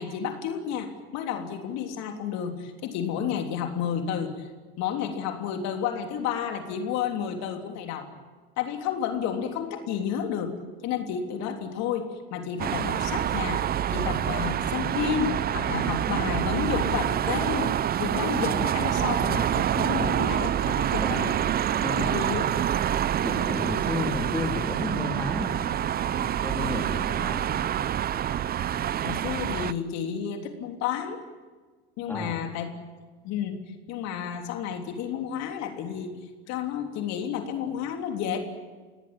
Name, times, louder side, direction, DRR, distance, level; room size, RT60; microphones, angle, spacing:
voice 1, 0.0-4.5 4.8-8.1 8.6-10.6 10.8-17.7 18.0-21.4 22.0-22.4 29.0-31.2 32.0-32.7 33.2-36.1 36.5-38.4, left 8 dB, 60° left, 4 dB, 3.3 m, -31 dB
sound 1, 12.6-29.7, right 10 dB, 30° right, 0.7 m, -27 dB
voice 2, 21.0-21.3 21.8-22.6 23.2-25.5 26.2-27.6 32.1-32.5, left 1 dB, 5° left, 2 dB, 3.3 m, -33 dB
25.5 x 18.5 x 8.9 m, 1.3 s
hypercardioid pair, 95°, 31 cm